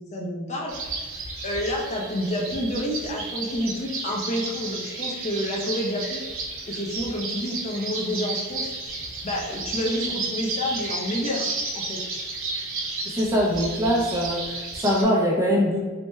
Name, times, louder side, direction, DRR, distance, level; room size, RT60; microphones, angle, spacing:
voice 1, 0.1-1.0 1.4-6.2 6.7-8.7 9.2-12.0, left 1 dB, 35° left, -1 dB, 0.6 m, -29 dB
sound 1, 0.7-15.0, right 3 dB, 70° right, 0.7 m, -32 dB
voice 2, 13.1-15.8, equal, 15° right, -4 dB, 0.5 m, -22 dB
3.3 x 2.2 x 3.1 m, 1.4 s
head